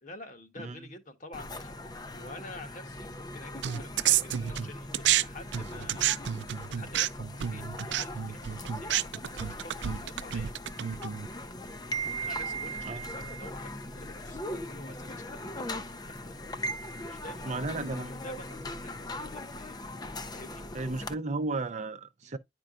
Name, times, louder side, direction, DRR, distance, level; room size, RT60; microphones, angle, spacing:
voice 1, 0.0-10.5 12.2-15.7 16.5-19.9 20.3-20.6 21.0-21.1 22.2-22.4, left 2 dB, 45° left, 1.3 m, -49 dB
sound 1, 1.3-21.1, equal, 25° left, 0.6 m, -39 dB
sound 2, 3.6-5.2 5.5-11.3, right 11 dB, 90° right, 0.4 m, -29 dB
voice 2, 17.4-18.2 20.7-22.4, right 3 dB, 40° right, 0.6 m, -34 dB
10.5 x 4.5 x 2.4 m
head